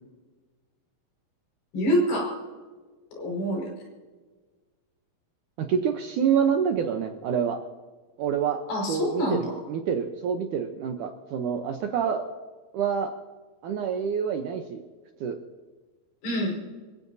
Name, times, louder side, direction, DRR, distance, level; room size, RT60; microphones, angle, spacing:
voice 1, 1.7-2.4 3.2-3.7 8.7-9.6 16.2-16.6, equal, 80° left, -1 dB, 7.2 m, -26 dB
voice 2, 5.6-7.6 8.2-8.6 8.9-12.3 12.7-13.1 13.6-14.8 15.2-15.4, right 7 dB, 75° right, 5 dB, 1.9 m, -27 dB
26.0 x 15.5 x 2.7 m, 1.4 s
omnidirectional pair, 4.5 m